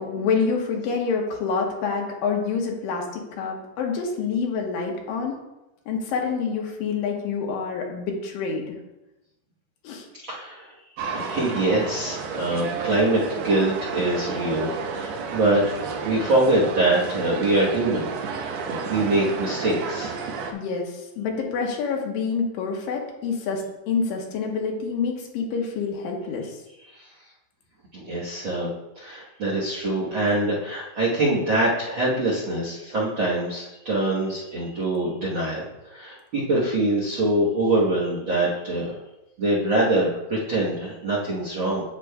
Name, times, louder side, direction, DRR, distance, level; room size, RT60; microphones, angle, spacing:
voice 1, 0.0-5.4 5.9-8.7 9.8-10.1 20.5-26.6, left 5 dB, 90° left, 1 dB, 2.8 m, -27 dB
voice 2, 10.2-10.7 11.1-20.2 26.9-27.1 27.9-28.7 29.0-39.0 39.4-41.8, right 2 dB, 60° right, -5 dB, 1.3 m, -24 dB
sound 1, 11.0-20.5, right 5 dB, 90° right, 1.4 m, -31 dB
8.6 x 8.2 x 2.3 m, 0.97 s
omnidirectional pair, 3.9 m